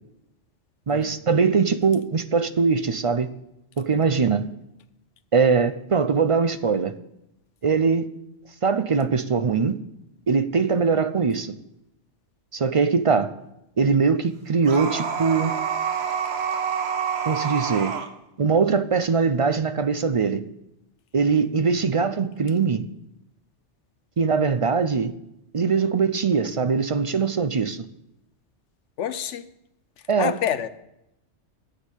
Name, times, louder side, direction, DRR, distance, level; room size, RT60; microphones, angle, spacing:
voice 1, 0.9-3.3 3.8-4.5 5.3-6.9 7.6-8.1 8.6-9.8 10.3-11.6 12.5-13.3 13.8-15.5 17.3-17.9 18.4-20.4 21.1-22.8 24.2-25.1 25.5-27.8 30.1-30.4, right 5 dB, 45° right, 0.4 m, -21 dB
sound 1, 14.6-18.1, right 7 dB, 65° right, 1.2 m, -27 dB
voice 2, 29.0-29.5 30.2-30.7, left 9 dB, 80° left, 1.1 m, -27 dB
10.0 x 7.4 x 8.1 m
omnidirectional pair, 1.2 m